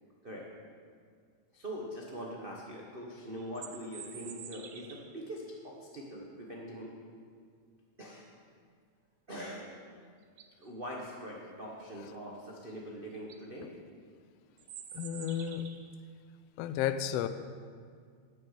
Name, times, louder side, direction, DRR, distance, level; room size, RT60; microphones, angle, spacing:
voice 1, 1.5-6.9 8.0-8.3 9.3-9.7 10.6-13.7, equal, 45° right, -3 dB, 0.6 m, -43 dB
sound 1, 3.4-5.2 9.7-9.8 10.2-10.7 12.7-12.8 13.1-13.4 14.6-16.0, right 8 dB, 75° right, 1.2 m, -48 dB
voice 2, 14.9-15.7 16.6-17.3, left 10 dB, 80° left, 11 dB, 1.4 m, -32 dB
10.5 x 9.7 x 7.5 m, 2.1 s
omnidirectional pair, 3.4 m